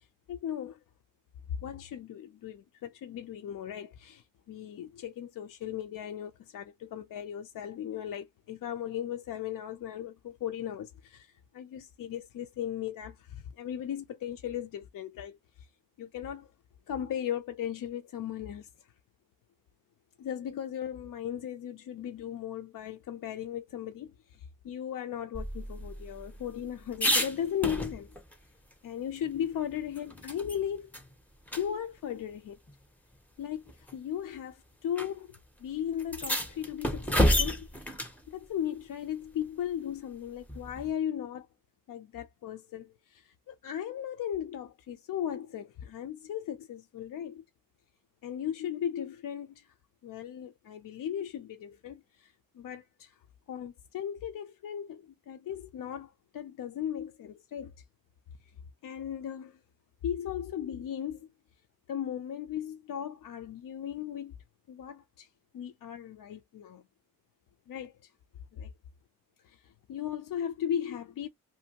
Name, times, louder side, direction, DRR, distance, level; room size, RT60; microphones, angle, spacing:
voice 1, 0.3-0.8 1.6-15.7 16.0-16.5 16.9-18.9 20.2-28.2 28.8-30.9 31.6-32.6 33.4-38.0 38.3-41.5 41.9-47.4 48.2-49.7 50.0-53.2 53.5-57.7 58.8-59.6 60.0-61.3 61.9-64.3 64.7-65.3 65.5-66.8 67.7-68.1 68.5-68.7 69.4-71.3, left 9 dB, 65° left, 0.5 m, -37 dB
sound 1, 25.3-28.3 28.7-28.8 29.2-30.6 30.9-31.1 31.5-31.6 32.7-32.8 33.7-34.0 35.0-35.1 35.3-35.4 36.0-38.2 40.5-40.9, equal, 5° left, 0.5 m, -30 dB
2.7 x 2.5 x 2.8 m
wide cardioid pair, 150°, 36 cm